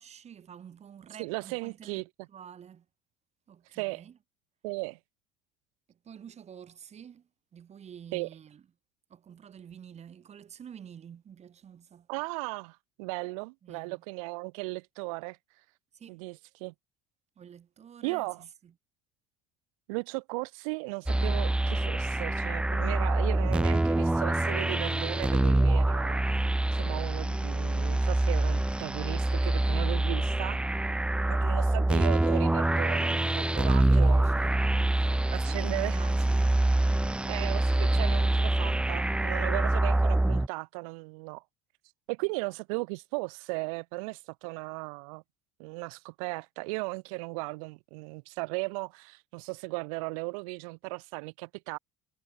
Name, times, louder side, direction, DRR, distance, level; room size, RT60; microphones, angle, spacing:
voice 1, 0.0-2.9 3.5-4.2 5.9-8.6 9.1-12.1 13.6-14.0 15.9-16.2 17.4-18.7 33.7-34.6 34.9-36.6 39.5-40.1, right 8 dB, 40° right, 3.8 m, -49 dB
voice 2, 1.2-2.0 3.7-4.0 4.6-5.0 8.1-8.3 12.1-15.6 16.1-16.7 18.0-18.4 19.9-26.3 26.7-30.6 31.3-34.2 35.3-36.1 37.3-41.4 42.1-45.2 45.6-51.8, right 30 dB, 85° right, 0.9 m, -36 dB
sound 1, 21.1-40.5, right 1 dB, 5° right, 0.5 m, -25 dB
supercardioid pair, 95°, 17 cm